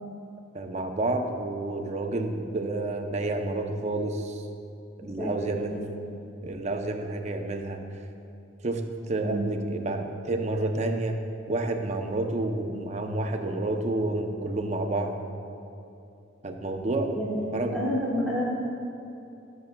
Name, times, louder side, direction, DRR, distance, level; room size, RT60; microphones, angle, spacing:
voice 1, 0.5-4.4 5.0-5.7 6.4-7.8 8.6-8.8 9.1-11.2 11.5-15.1 16.4-17.1 17.5-17.8, right 2 dB, 35° right, 4 dB, 0.6 m, -29 dB
voice 2, 5.0-5.6 6.0-6.1 9.2-9.5 17.1-17.4 17.7-18.4, equal, 5° left, -10 dB, 1.0 m, -30 dB
13.0 x 6.7 x 2.2 m, 2.8 s
head